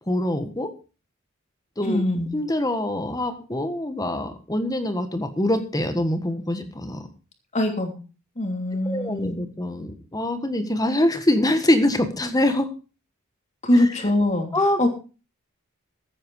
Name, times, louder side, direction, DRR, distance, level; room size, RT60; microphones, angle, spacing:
voice 1, 0.1-0.7 1.8-2.0 2.3-7.0 8.9-12.7 14.5-14.9, left 1 dB, 15° left, 9 dB, 1.5 m, -24 dB
voice 2, 1.8-2.3 7.5-7.9 8.4-9.4 13.6-14.9, left 1 dB, 30° left, 4 dB, 2.9 m, -23 dB
15.0 x 9.2 x 4.7 m, 0.34 s
head